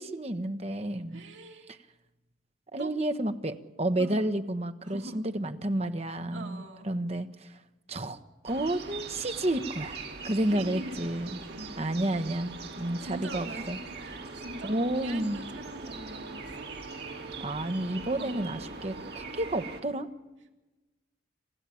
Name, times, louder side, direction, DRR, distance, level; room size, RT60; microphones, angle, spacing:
voice 1, 0.0-1.2 2.7-7.6 7.9-8.2 8.4-11.4 11.8-13.8 14.6-15.4 17.4-20.1, right 1 dB, 35° right, 8 dB, 1.2 m, -31 dB
voice 2, 1.1-1.7 2.8-3.0 4.0-4.2 4.8-5.3 6.3-6.9 10.4-11.0 11.5-11.9 13.0-16.7 18.2-18.4, right 2 dB, 75° right, 2 dB, 2.9 m, -43 dB
sound 1, 8.5-19.8, right 3 dB, 55° right, 2.9 m, -41 dB
27.0 x 15.0 x 8.6 m, 1.1 s
head